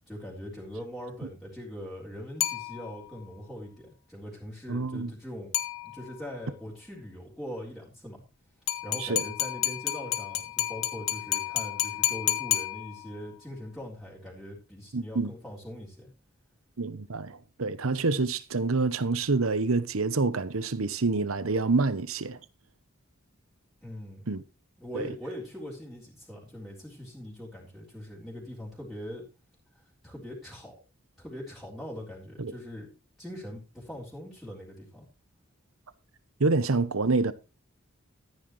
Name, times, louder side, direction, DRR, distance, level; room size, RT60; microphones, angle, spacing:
voice 1, 0.1-5.5 5.8-8.2 8.8-16.1 23.8-24.4 24.8-29.3 30.0-30.7 31.2-32.9 33.2-35.1, equal, ahead, 3.7 m, -41 dB
sound 1, 2.4-3.2 5.5-6.3 8.7-13.3, left 14 dB, 80° left, 1.6 m, -31 dB
voice 2, 4.7-5.1 9.0-9.2 14.9-15.3 16.8-22.4 24.3-24.4 24.9-25.1 32.4-32.5 36.4-37.3, right 3 dB, 90° right, 0.9 m, -27 dB
14.0 x 10.0 x 3.2 m
head